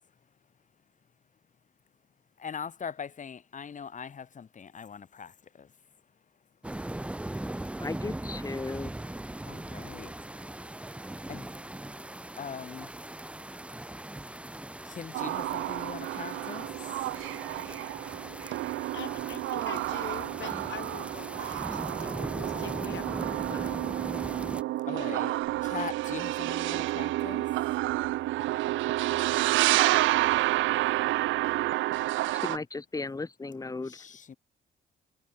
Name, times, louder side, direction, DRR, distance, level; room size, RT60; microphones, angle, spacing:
voice 1, 2.4-5.7 9.4-10.2 11.3-11.9 12.4-13.0 14.8-17.1 23.7-23.9 24.9-27.5 30.6-30.7 33.8-34.4, left 6 dB, 40° left, 1.4 m, -41 dB
sound 1, 6.6-24.6, right 1 dB, 5° right, 0.6 m, -39 dB
voice 2, 7.8-8.9 32.3-34.0, left 3 dB, 15° left, 1.2 m, -35 dB
sound 2, 15.1-32.6, right 16 dB, 80° right, 0.5 m, -29 dB
voice 3, 18.9-23.1 23.5-23.9, left 11 dB, 70° left, 2.2 m, -44 dB
cardioid pair, 90°, 20 cm